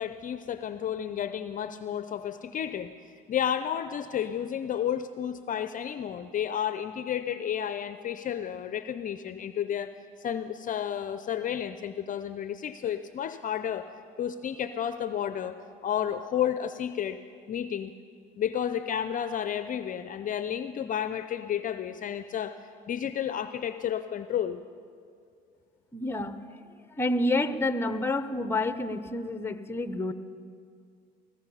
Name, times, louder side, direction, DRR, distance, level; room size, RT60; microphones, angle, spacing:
voice 1, 0.0-2.9 3.3-9.9 10.2-13.8 14.2-15.6 15.8-17.2 17.5-17.9 18.4-22.5 22.9-24.6, left 9 dB, 45° left, 11 dB, 0.5 m, -31 dB
voice 2, 25.9-26.6 27.0-30.1, left 2 dB, 10° left, 10 dB, 0.9 m, -29 dB
16.0 x 15.0 x 5.6 m, 2.3 s
supercardioid pair, 95°, 20 cm